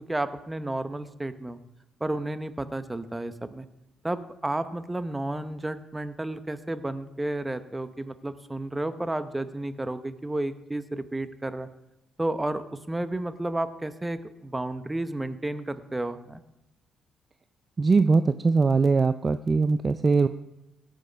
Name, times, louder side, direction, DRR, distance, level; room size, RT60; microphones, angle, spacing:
voice 1, 0.1-1.6 2.0-3.6 4.0-11.7 12.2-16.4, right 1 dB, 15° right, 11 dB, 0.8 m, -32 dB
voice 2, 17.8-20.3, right 4 dB, 35° right, 11 dB, 0.4 m, -21 dB
17.5 x 6.5 x 5.1 m, 0.93 s
cardioid pair, 90°, 0 cm